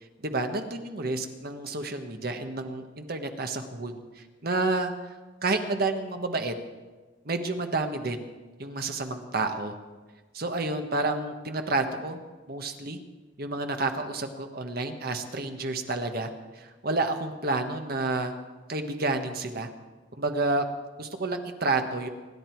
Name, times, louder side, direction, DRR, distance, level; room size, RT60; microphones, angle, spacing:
voice 1, 0.2-4.9 5.4-6.5 7.2-8.2 8.6-9.7 10.3-12.2 12.5-13.0 13.4-16.3 16.5-18.3 18.7-19.7 20.1-20.6 21.0-22.1, right 2 dB, 50° right, 6 dB, 1.4 m, -30 dB
25.5 x 11.0 x 4.6 m, 1.3 s
head